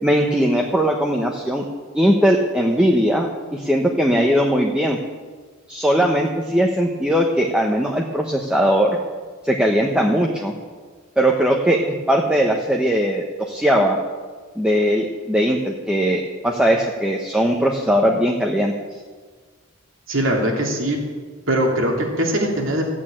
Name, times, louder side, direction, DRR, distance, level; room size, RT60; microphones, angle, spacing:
voice 1, 0.0-1.7 1.9-5.0 5.7-8.9 9.4-10.5 11.2-14.0 14.6-18.7, equal, 5° right, 0 dB, 1.1 m, -19 dB
voice 2, 20.1-21.0 21.5-22.9, right 1 dB, 70° right, 1 dB, 2.9 m, -21 dB
14.5 x 8.6 x 8.9 m, 1.5 s
head